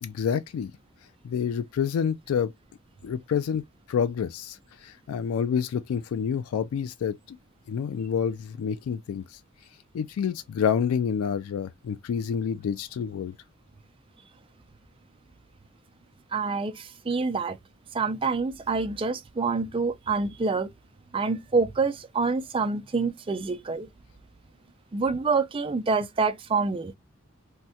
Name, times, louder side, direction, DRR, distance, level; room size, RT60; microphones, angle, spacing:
voice 1, 0.0-0.7 1.2-2.5 3.0-3.6 3.9-7.4 7.7-9.4 9.9-13.3, left 7 dB, 90° left, 0.3 m, -28 dB
voice 2, 16.3-17.6 17.9-20.7 21.1-23.9 24.9-26.9, right 4 dB, 25° right, 0.3 m, -27 dB
3.5 x 2.1 x 2.7 m
head